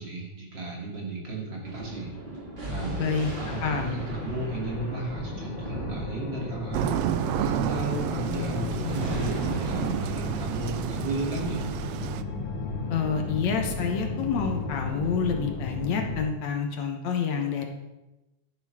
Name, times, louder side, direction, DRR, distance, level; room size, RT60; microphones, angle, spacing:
voice 1, 0.0-2.1 2.6-6.9 7.4-11.6, right 2 dB, 40° right, -2 dB, 3.2 m, -34 dB
Thunder, 1.6-12.5, right 2 dB, 20° right, 1.8 m, -39 dB
voice 2, 3.0-3.3 3.6-4.0 12.9-17.7, left 6 dB, 70° left, 4 dB, 2.4 m, -28 dB
sound 1, 3.4-16.3, left 4 dB, 85° left, 3.4 m, -34 dB
sound 2, 6.7-12.2, right 12 dB, 80° right, 1.5 m, -30 dB
12.0 x 10.5 x 4.8 m, 0.99 s
omnidirectional pair, 3.4 m